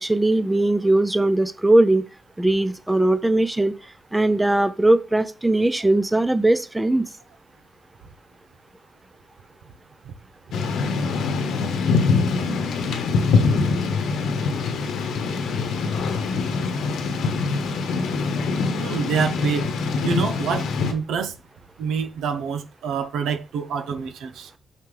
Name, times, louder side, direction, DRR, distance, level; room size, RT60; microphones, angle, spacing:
voice 1, 0.0-2.0 2.4-3.7 4.1-7.1, right 1 dB, 10° right, 0.5 m, -19 dB
Thunder / Rain, 10.5-20.9, left 4 dB, 90° left, 1.2 m, -23 dB
voice 2, 18.8-19.7 20.0-21.3 21.8-24.5, right 6 dB, 90° right, 0.8 m, -27 dB
5.9 x 5.8 x 3.3 m
cardioid pair, 100°, 0 cm